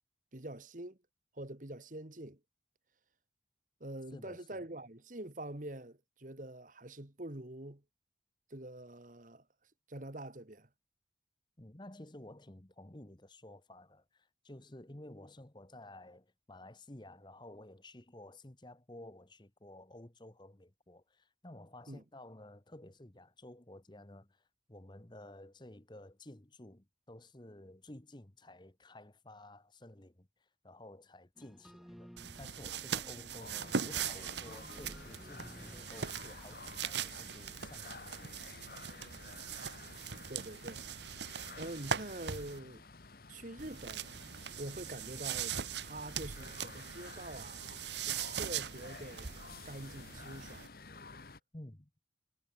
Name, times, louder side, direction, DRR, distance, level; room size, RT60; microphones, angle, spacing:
voice 1, 0.3-1.0 1.3-2.4 3.8-7.8 8.5-9.4 9.9-10.7 21.9-22.0 40.3-40.8 41.6-42.8 43.3-44.1 44.6-47.7 48.0-49.3 49.6-50.7, right 1 dB, 45° right, 1.9 m, -45 dB
voice 2, 4.1-4.6 11.6-38.7 51.5-51.9, left 1 dB, 25° left, 1.3 m, -53 dB
sound 1, 31.4-36.8, equal, ahead, 1.2 m, -56 dB
sound 2, 32.2-42.6 43.6-50.7, right 7 dB, 75° right, 1.2 m, -41 dB
sound 3, 33.4-51.4, left 4 dB, 55° left, 1.2 m, -52 dB
head